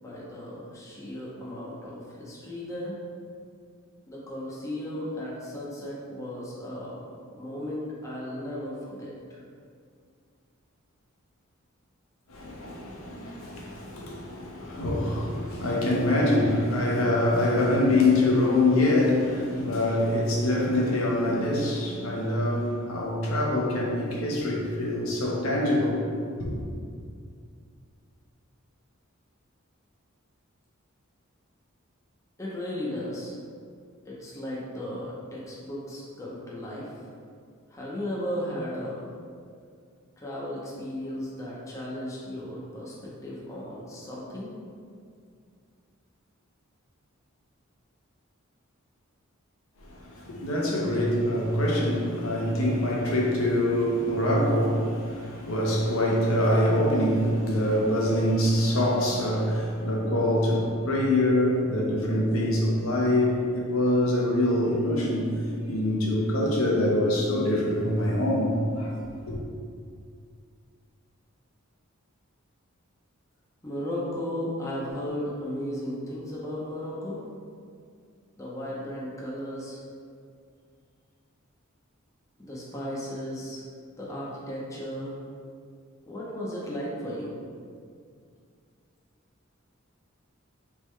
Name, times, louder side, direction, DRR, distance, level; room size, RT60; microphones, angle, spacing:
voice 1, 0.0-3.0 4.1-7.0 7.3-9.4 32.4-33.3 34.0-37.1 37.7-39.1 40.2-44.5 73.6-77.2 78.4-79.8 82.4-83.6 84.0-85.2 86.1-87.4, left 1 dB, 15° left, -6 dB, 0.6 m, -35 dB
voice 2, 12.3-26.1 26.4-26.6 49.8-68.9 69.3-69.4, left 1 dB, 75° left, -3 dB, 0.9 m, -25 dB
4.2 x 3.5 x 3.1 m, 2.2 s
head